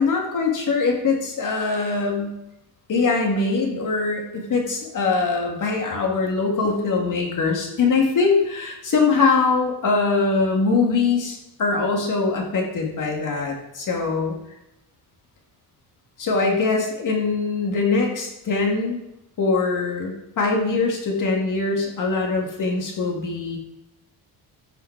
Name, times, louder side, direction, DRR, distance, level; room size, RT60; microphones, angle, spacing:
voice 1, 0.0-2.4 2.9-14.4 16.2-19.0 19.4-23.6, left 4 dB, 50° left, 1 dB, 2.0 m, -22 dB
14.5 x 5.6 x 4.6 m, 0.85 s
cardioid pair, 165°, 42 cm